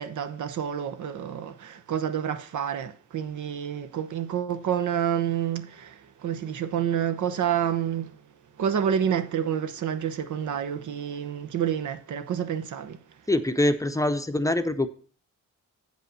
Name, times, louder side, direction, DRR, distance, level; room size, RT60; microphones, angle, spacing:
voice 1, 0.0-8.1 8.6-13.0, right 9 dB, 70° right, 0.9 m, -28 dB
voice 2, 13.3-14.9, left 1 dB, 10° left, 0.7 m, -24 dB
7.8 x 5.2 x 6.7 m
cardioid pair, 75°, 31 cm